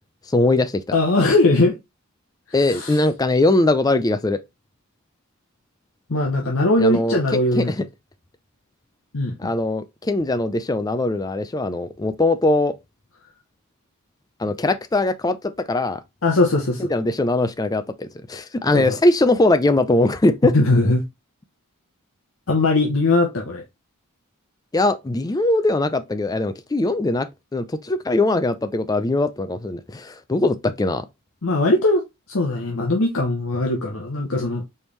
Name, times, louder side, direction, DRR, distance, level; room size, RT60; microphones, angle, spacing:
voice 1, 0.3-1.0 2.5-4.4 6.8-7.2 7.6-7.8 9.4-12.7 14.4-16.0 16.9-20.5 24.7-27.3 27.5-31.1, left 2 dB, 15° left, 0.4 m, -21 dB
voice 2, 0.9-1.8 2.6-3.0 6.1-7.7 9.1-9.5 16.2-16.9 18.7-19.0 20.4-21.0 22.5-23.6 31.4-34.6, left 2 dB, 65° left, 0.8 m, -20 dB
4.4 x 3.5 x 3.1 m
head